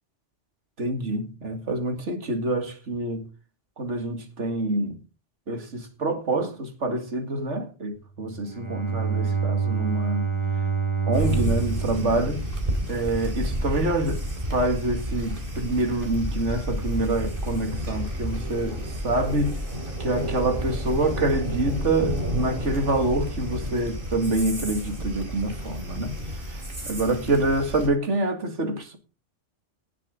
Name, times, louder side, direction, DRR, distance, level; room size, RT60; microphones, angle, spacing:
voice 1, 0.8-3.3 3.8-5.0 5.5-10.3 11.1-12.5 12.9-14.2 14.5-19.6 20.0-26.1 26.5-29.0, right 2 dB, 75° right, 2.4 m, -26 dB
Bowed string instrument, 8.2-13.4, right 5 dB, 20° right, 4.7 m, -27 dB
sound 1, 11.1-27.9, equal, 45° right, 3.4 m, -31 dB
18.0 x 7.6 x 3.8 m
omnidirectional pair, 1.2 m